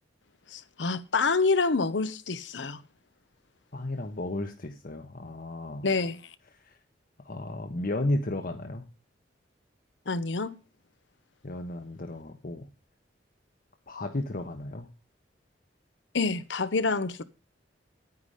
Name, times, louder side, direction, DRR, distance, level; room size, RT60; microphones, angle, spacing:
voice 1, 0.5-2.8 5.8-6.2 10.1-10.5 16.1-17.2, left 4 dB, 85° left, 0.8 m, -27 dB
voice 2, 3.7-5.9 6.6-6.7 7.2-8.8 11.4-12.7 13.9-14.9, left 1 dB, 50° left, 1.1 m, -33 dB
10.0 x 9.6 x 5.0 m
head